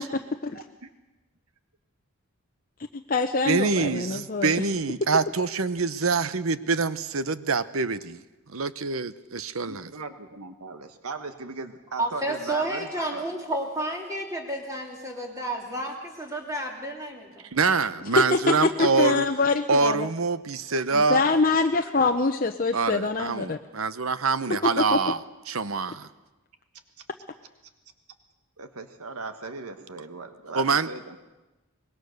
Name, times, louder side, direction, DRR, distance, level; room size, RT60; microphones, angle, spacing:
voice 1, 0.5-0.9 9.6-13.2 28.6-31.2, right 3 dB, 90° right, 8 dB, 1.5 m, -38 dB
voice 2, 2.9-4.5 18.2-20.1 20.9-23.6 24.6-25.0, left 3 dB, 40° left, 5 dB, 0.8 m, -24 dB
voice 3, 3.5-8.2 8.5-9.9 17.5-19.3 19.7-21.2 22.7-25.2 25.5-26.1 30.5-30.9, right 4 dB, 70° right, 14 dB, 0.9 m, -25 dB
voice 4, 12.0-17.5, right 1 dB, 15° right, 1 dB, 3.0 m, -31 dB
24.5 x 21.0 x 6.6 m, 1.1 s
head